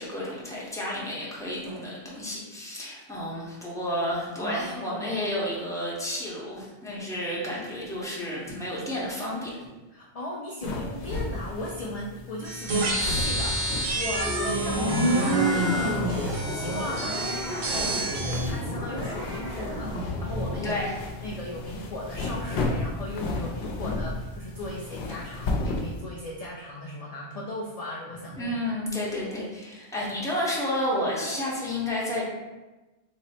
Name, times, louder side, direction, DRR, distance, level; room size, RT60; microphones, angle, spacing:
voice 1, 0.0-9.5 20.6-20.9 28.4-32.2, left 1 dB, 5° left, -6 dB, 0.7 m, -31 dB
voice 2, 4.4-5.2 9.9-20.8 21.2-28.6 31.2-31.4, left 1 dB, 60° left, -3 dB, 0.4 m, -37 dB
sound 1, 10.6-26.0, left 2 dB, 80° left, 0.9 m, -34 dB
sound 2, 12.4-18.5, right 2 dB, 60° right, 0.9 m, -30 dB
sound 3, 14.0-20.8, equal, 75° right, 1.4 m, -29 dB
3.6 x 2.0 x 4.1 m, 1.1 s
omnidirectional pair, 1.1 m